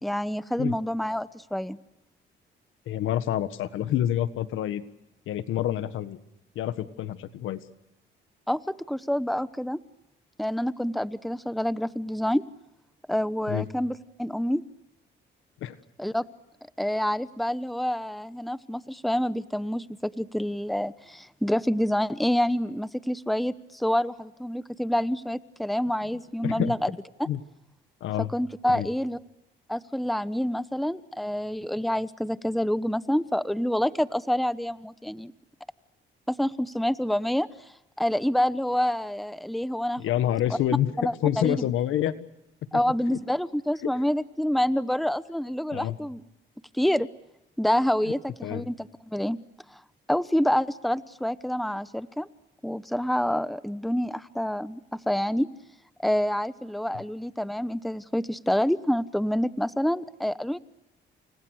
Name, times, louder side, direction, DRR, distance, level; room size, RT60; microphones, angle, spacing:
voice 1, 0.0-1.8 8.5-9.8 10.4-12.4 13.1-14.6 16.0-16.2 16.8-26.9 27.2-27.3 28.2-29.2 29.7-35.3 36.3-37.5 38.0-40.0 41.0-41.7 42.7-46.2 46.7-47.1 47.6-49.4 49.7-49.8 50.1-52.3 52.6-54.8 55.1-55.5 56.0-60.6, equal, ahead, 14 dB, 1.1 m, -27 dB
voice 2, 2.9-4.8 5.3-6.2 6.5-7.6 13.5-13.6 15.6-15.7 26.4-26.7 27.3-27.4 28.0-28.3 28.7-28.9 40.0-40.9 41.2-42.1 45.7-46.0 48.4-48.6, left 11 dB, 85° left, 12 dB, 1.6 m, -27 dB
29.5 x 29.0 x 6.5 m, 0.90 s
cardioid pair, 90°, 20 cm